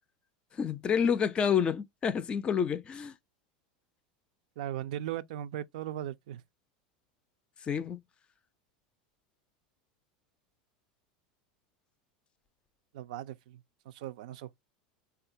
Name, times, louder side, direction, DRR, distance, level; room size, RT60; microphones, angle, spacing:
voice 1, 0.6-3.1 7.7-8.0, left 7 dB, 25° left, 0.4 m, -28 dB
voice 2, 4.6-6.4 12.9-13.6 13.9-14.6, right 12 dB, 80° right, 0.4 m, -38 dB
3.6 x 2.3 x 2.6 m
supercardioid pair, 140°, 4 cm